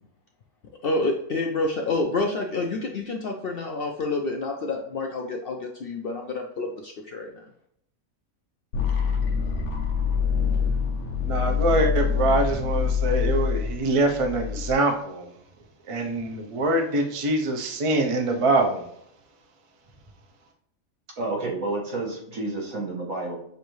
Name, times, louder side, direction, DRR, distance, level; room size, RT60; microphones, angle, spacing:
voice 1, 0.8-7.4, left 2 dB, 65° left, 0.6 m, -28 dB
sound 1, 8.7-14.7, left 6 dB, 80° left, 1.1 m, -25 dB
voice 2, 11.3-15.3 15.9-18.9, right 2 dB, 40° right, 0.5 m, -24 dB
voice 3, 21.2-23.4, right 2 dB, 70° right, 1.9 m, -30 dB
6.6 x 2.6 x 3.1 m
omnidirectional pair, 1.4 m